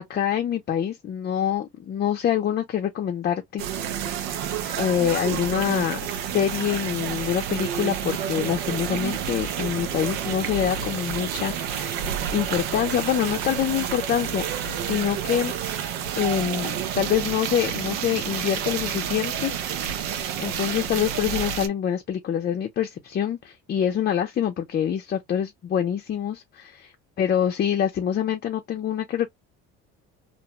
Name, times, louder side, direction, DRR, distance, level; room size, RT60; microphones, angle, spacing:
voice 1, 0.0-3.6 4.2-4.3 4.8-6.0 6.3-15.5 16.2-19.5 20.4-26.9 27.2-29.3, left 9 dB, 35° left, 0.6 m, -25 dB
sound 1, 3.6-21.7, right 9 dB, 85° right, 0.8 m, -29 dB
2.5 x 2.2 x 2.9 m
cardioid pair, 110°, 29 cm